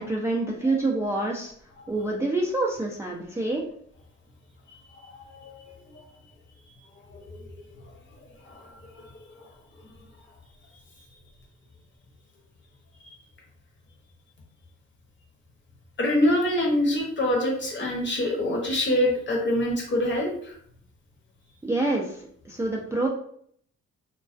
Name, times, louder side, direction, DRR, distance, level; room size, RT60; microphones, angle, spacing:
voice 1, 0.0-1.5 1.9-3.6 21.6-22.0 22.5-23.1, right 2 dB, 10° right, -3 dB, 0.3 m, -26 dB
voice 2, 4.7-6.0 7.1-7.5 8.4-9.2 16.0-20.5, left 1 dB, 40° left, 0 dB, 0.8 m, -26 dB
2.2 x 2.2 x 2.4 m, 0.63 s
cardioid pair, 90°, 30 cm